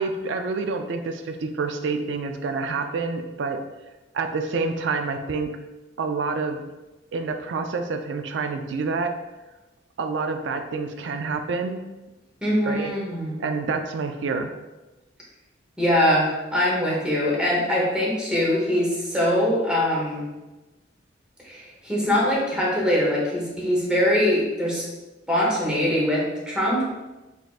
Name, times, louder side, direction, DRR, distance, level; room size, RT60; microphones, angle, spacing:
voice 1, 0.0-3.6 4.1-5.5 6.0-6.6 7.1-9.2 10.0-11.8 12.7-12.9 13.4-14.5, right 4 dB, 75° right, 7 dB, 0.4 m, -27 dB
voice 2, 12.4-13.3 15.8-20.2 21.4-24.8 25.3-26.9, left 1 dB, 5° right, -5 dB, 1.0 m, -22 dB
4.0 x 3.6 x 2.4 m, 1.1 s
head